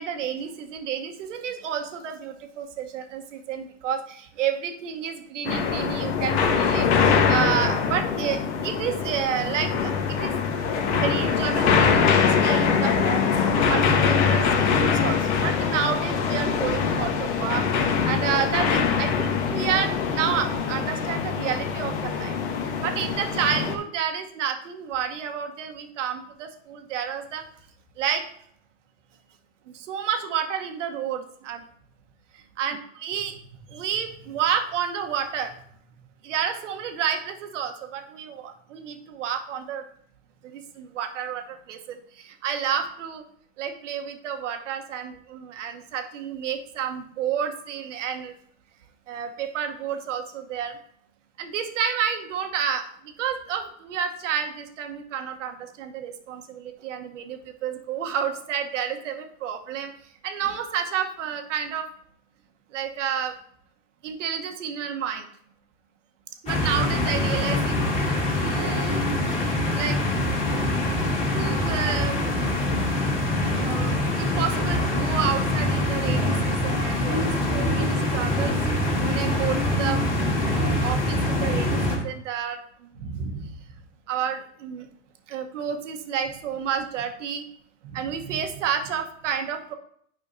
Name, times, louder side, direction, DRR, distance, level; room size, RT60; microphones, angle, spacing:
voice 1, 0.0-8.4 8.6-9.9 10.2-10.3 10.9-12.1 12.4-13.3 13.7-14.4 14.7-17.6 18.0-22.3 22.8-27.4 28.0-28.2 29.9-31.6 32.6-33.3 33.7-35.5 36.2-39.8 40.8-41.4 41.7-42.0 42.4-43.2 43.6-48.3 49.1-50.7 51.4-52.8 53.2-59.9 60.2-61.8 62.7-63.3 64.0-65.2 66.4-67.9 68.4-69.1 69.6-70.0 71.3-72.2 73.6-73.9 74.2-78.5 79.0-80.0 80.5-81.8 82.0-82.6 83.0-83.5 84.1-84.9 85.3-87.4 87.9-89.7, right 8 dB, 75° right, 5 dB, 1.1 m, -30 dB
sound 1, 5.4-23.7, left 6 dB, 60° left, 1.3 m, -23 dB
sound 2, 66.5-82.0, left 1 dB, 20° left, 2.2 m, -24 dB
9.9 x 5.5 x 2.6 m, 0.64 s
hypercardioid pair, 125°, 37 cm